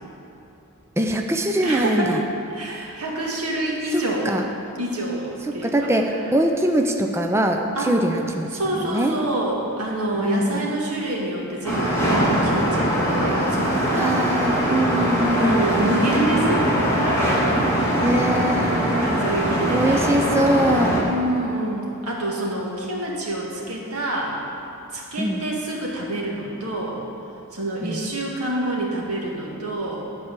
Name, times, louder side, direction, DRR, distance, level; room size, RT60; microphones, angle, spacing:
voice 1, 1.0-2.2 3.9-4.4 5.5-9.2 10.2-10.7 13.9-15.7 18.0-19.1 19.7-21.0 25.2-25.5 27.8-28.0, right 1 dB, 10° right, 3 dB, 0.5 m, -23 dB
voice 2, 1.6-2.2 2.5-4.4 4.8-5.7 7.8-7.9 8.5-14.2 15.3-17.5 19.0-20.2 21.0-24.4 24.9-27.0 27.5-30.1, right 1 dB, 85° right, -3 dB, 1.9 m, -27 dB
sound 1, 11.6-21.0, equal, 10° left, 1.8 m, -21 dB
11.5 x 4.8 x 7.5 m, 2.8 s
head